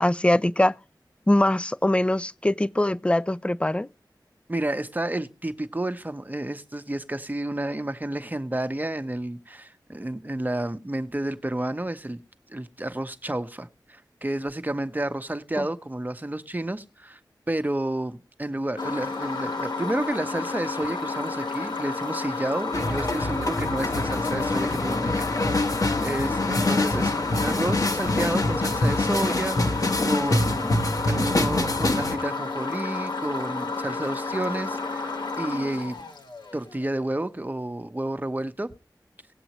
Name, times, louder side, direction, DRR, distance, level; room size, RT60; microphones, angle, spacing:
voice 1, 0.0-0.7 1.3-3.9 15.6-15.7, left 1 dB, 15° left, 0.5 m, -22 dB
voice 2, 4.5-12.2 12.5-17.2 17.5-25.6 26.0-30.8 31.1-36.0 36.5-38.7, right 1 dB, 25° right, 1.0 m, -30 dB
sound 1, 18.8-36.7, left 3 dB, 85° left, 1.8 m, -31 dB
sound 2, 22.7-32.2, left 2 dB, 50° left, 1.3 m, -25 dB
18.5 x 7.8 x 3.0 m
wide cardioid pair, 65°, 7 cm